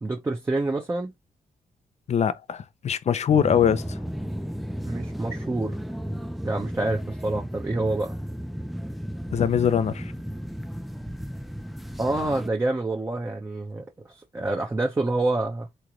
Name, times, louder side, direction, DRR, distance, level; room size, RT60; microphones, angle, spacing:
voice 1, 0.0-1.1 4.9-5.7 6.4-8.1 12.0-15.7, right 2 dB, 15° right, 0.8 m, -27 dB
voice 2, 2.1-4.0 9.3-10.1, left 8 dB, 50° left, 0.6 m, -22 dB
sound 1, 3.3-12.5, equal, ahead, 0.4 m, -34 dB
3.9 x 3.3 x 3.7 m
wide cardioid pair, 160°, 15 cm